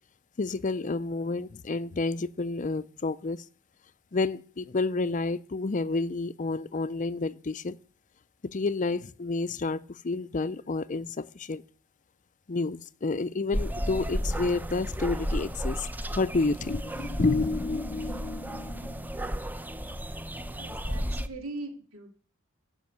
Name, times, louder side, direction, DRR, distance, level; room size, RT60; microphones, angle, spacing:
voice 1, 0.4-3.4 4.1-7.8 8.4-11.6 12.5-19.1, left 3 dB, 35° left, 0.5 m, -30 dB
sound 1, 13.5-21.3, equal, 10° right, 0.7 m, -33 dB
voice 2, 20.5-22.1, right 2 dB, 75° right, 2.7 m, -40 dB
15.5 x 6.3 x 8.5 m
head